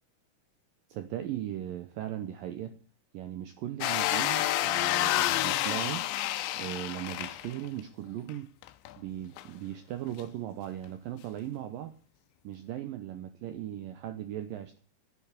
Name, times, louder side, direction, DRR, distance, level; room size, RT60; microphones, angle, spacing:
voice 1, 0.9-2.8 3.1-6.0 6.5-8.5 9.0-11.9 12.4-14.8, right 12 dB, 85° right, 9 dB, 2.0 m, -38 dB
sound 1, 3.8-7.8 8.3-8.4 8.6-8.9 9.4-9.5 10.2-10.3, left 14 dB, 90° left, 3.1 m, -29 dB
9.5 x 9.0 x 8.1 m, 0.41 s
omnidirectional pair, 5.1 m